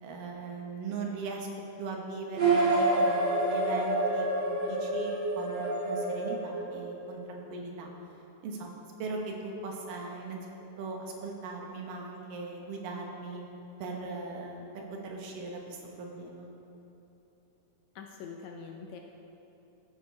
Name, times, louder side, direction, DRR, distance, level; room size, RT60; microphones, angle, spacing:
voice 1, 0.0-1.5 1.8-7.9 8.4-10.4 10.8-13.4 13.8-16.5, right 3 dB, 90° right, 0 dB, 2.8 m, -39 dB
sound 1, 2.3-7.2, right 2 dB, 35° right, 2.4 m, -28 dB
voice 2, 18.0-19.0, left 5 dB, 75° left, 2 dB, 1.8 m, -44 dB
15.0 x 6.5 x 4.5 m, 3.0 s
omnidirectional pair, 3.7 m